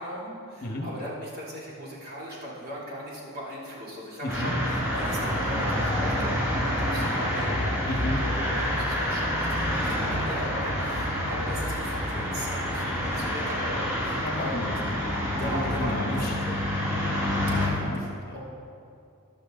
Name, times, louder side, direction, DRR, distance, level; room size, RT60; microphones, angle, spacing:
voice 1, 0.0-14.7 15.4-16.5 17.6-18.4, equal, 45° right, -6 dB, 3.1 m, -38 dB
voice 2, 4.2-4.6 7.8-8.2 14.2-16.4 17.2-18.0 18.3-18.4, left 1 dB, 45° left, 1 dB, 1.4 m, -33 dB
sound 1, 4.3-17.7, equal, 15° right, 2.8 m, -28 dB
15.0 x 11.5 x 3.9 m, 2.5 s
head